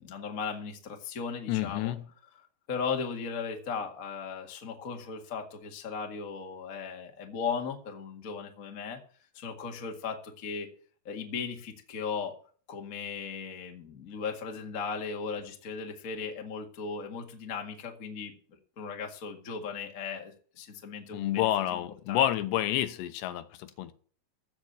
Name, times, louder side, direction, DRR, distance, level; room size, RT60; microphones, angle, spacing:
voice 1, 0.0-1.9 2.7-9.0 9.3-10.7 11.0-12.3 12.7-18.3 18.8-21.8 22.1-22.2, left 5 dB, 50° left, 1.0 m, -37 dB
voice 2, 1.5-2.0 21.1-23.9, left 13 dB, 85° left, 3.0 m, -29 dB
15.0 x 5.8 x 8.0 m
omnidirectional pair, 5.0 m